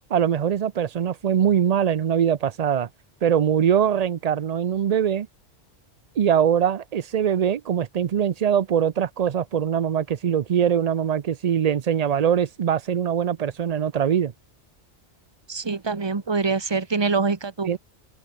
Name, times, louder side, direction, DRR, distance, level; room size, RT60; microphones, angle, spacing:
voice 1, 0.1-2.9 3.2-5.3 6.2-14.3 17.6-17.8, right 8 dB, 50° right, 0.5 m, -22 dB
voice 2, 15.5-17.8, right 4 dB, 25° right, 1.2 m, -25 dB
omnidirectional pair, 1.1 m